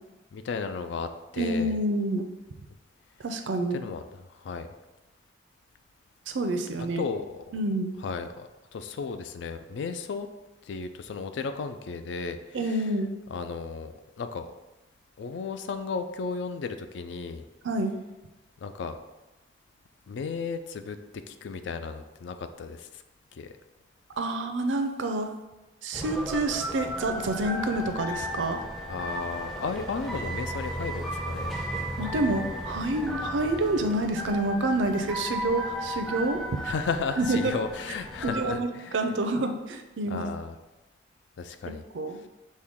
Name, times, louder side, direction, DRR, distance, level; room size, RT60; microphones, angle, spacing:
voice 1, 0.3-1.8 3.7-4.0 4.3-4.7 6.8-7.2 8.0-10.3 10.6-12.8 13.3-14.5 15.2-17.4 18.6-19.0 20.1-21.0 21.3-23.0 23.3-23.5 28.9-31.5 36.6-39.0 40.1-40.5 41.4-41.8, left 5 dB, 75° left, 9 dB, 0.3 m, -34 dB
voice 2, 1.4-2.3 3.2-3.8 6.3-7.1 7.5-7.9 12.5-13.1 17.6-17.9 24.2-25.3 25.8-28.6 32.0-36.4 37.2-37.5 38.2-40.3 41.7-42.2, right 2 dB, 80° right, 6 dB, 0.5 m, -28 dB
sound 1, 25.9-38.6, equal, ahead, 0.4 m, -35 dB
6.1 x 2.2 x 3.6 m, 1.1 s
head